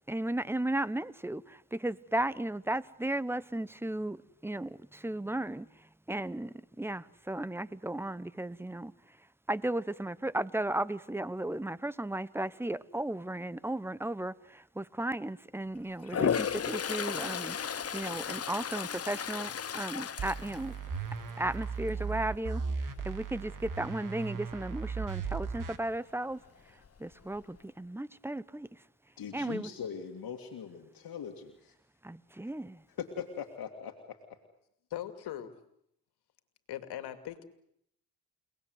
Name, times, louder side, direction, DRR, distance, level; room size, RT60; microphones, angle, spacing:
voice 1, 0.1-9.2 9.5-20.7 21.4-26.4 26.7-28.8 29.3-29.7 32.0-32.8, right 1 dB, 5° right, 19 dB, 0.9 m, -35 dB
Toilet flush, 16.0-21.2 21.6-22.0 26.5-26.6 26.8-27.6, left 7 dB, 40° left, 1.0 m, -34 dB
sound 1, 20.2-25.8, right 5 dB, 55° right, 2.5 m, -37 dB
voice 2, 29.2-31.7 33.0-34.2, left 7 dB, 65° left, 3 dB, 2.4 m, -41 dB
voice 3, 34.9-35.5 36.7-37.4, left 11 dB, 80° left, 8 dB, 2.5 m, -39 dB
29.5 x 19.0 x 8.0 m, 0.75 s
supercardioid pair, 70°, 39 cm